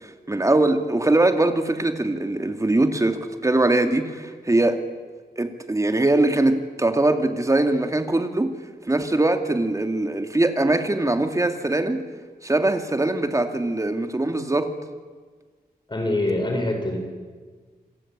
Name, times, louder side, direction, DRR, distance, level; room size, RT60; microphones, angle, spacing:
voice 1, 0.3-4.8 5.4-8.5 8.9-12.0 12.4-14.7, right 2 dB, 20° right, 6 dB, 2.3 m, -22 dB
voice 2, 15.9-17.0, left 1 dB, 30° left, 4 dB, 4.9 m, -24 dB
27.5 x 23.5 x 8.8 m, 1.5 s
wide cardioid pair, 130°, 16 cm